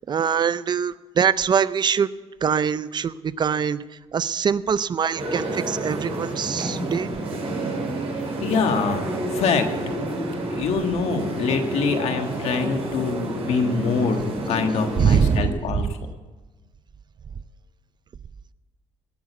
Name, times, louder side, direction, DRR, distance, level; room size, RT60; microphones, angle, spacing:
voice 1, 0.1-2.1 2.4-3.8 4.1-7.1 15.0-15.8, right 7 dB, 45° right, 16 dB, 0.5 m, -23 dB
sound 1, 5.1-15.4, right 2 dB, 60° right, 5.5 m, -29 dB
voice 2, 8.4-9.7 10.5-14.2 14.5-15.9, left 5 dB, 75° left, 6 dB, 1.5 m, -24 dB
17.5 x 6.5 x 8.3 m, 1.3 s
cardioid pair, 100°, 11 cm